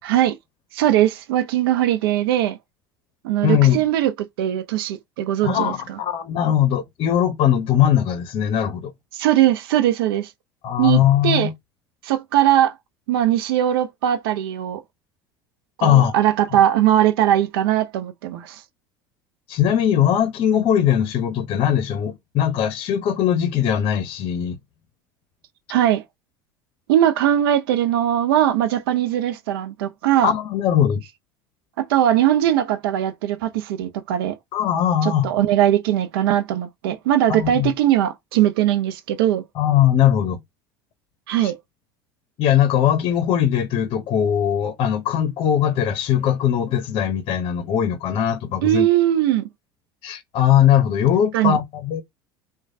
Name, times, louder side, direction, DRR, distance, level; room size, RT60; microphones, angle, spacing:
voice 1, 0.0-0.4 0.7-2.6 3.2-4.1 4.4-5.7 9.1-10.3 10.8-11.5 12.0-12.7 13.1-14.8 15.8-18.6 25.7-26.0 26.9-30.3 31.8-34.4 35.0-39.4 41.3-41.6 48.6-49.5 51.3-51.6, right 12 dB, 75° right, 0.5 m, -20 dB
voice 2, 3.4-3.8 5.4-8.9 10.6-11.5 15.8-16.1 19.5-24.6 30.2-31.0 34.5-35.3 37.3-37.7 39.5-40.4 41.4-41.5 42.4-48.9 50.0-52.0, left 10 dB, 50° left, 0.6 m, -20 dB
3.0 x 2.2 x 2.6 m
hypercardioid pair, 80°, 12 cm